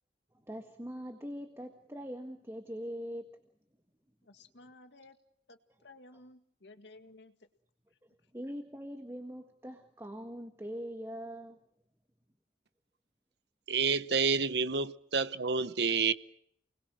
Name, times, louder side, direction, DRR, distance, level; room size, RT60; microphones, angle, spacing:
voice 1, 0.3-3.4 8.3-11.6, equal, 15° right, 1.7 m, -42 dB
voice 2, 4.2-5.2 5.5-7.4, left 2 dB, 80° left, 2.0 m, -55 dB
voice 3, 13.7-16.1, right 5 dB, 65° right, 1.0 m, -29 dB
29.5 x 21.0 x 6.3 m
head